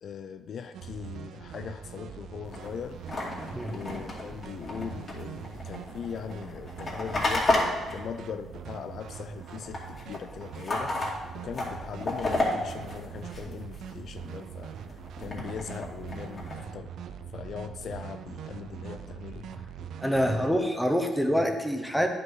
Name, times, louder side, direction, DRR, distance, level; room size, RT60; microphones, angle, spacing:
voice 1, 0.0-3.0 3.7-7.5 7.9-11.0 11.4-14.7 15.2-16.9 17.3-19.5 20.2-20.5, left 7 dB, 60° left, 10 dB, 0.4 m, -40 dB
sound 1, 0.7-20.6, right 8 dB, 75° right, 0.5 m, -42 dB
sound 2, 2.5-9.1 9.3-13.9 14.4-16.6, left 2 dB, 40° left, 2.3 m, -32 dB
voice 2, 20.0-22.1, equal, ahead, 3 dB, 1.0 m, -26 dB
9.8 x 5.3 x 4.0 m, 1.2 s
cardioid pair, 90°, 0 cm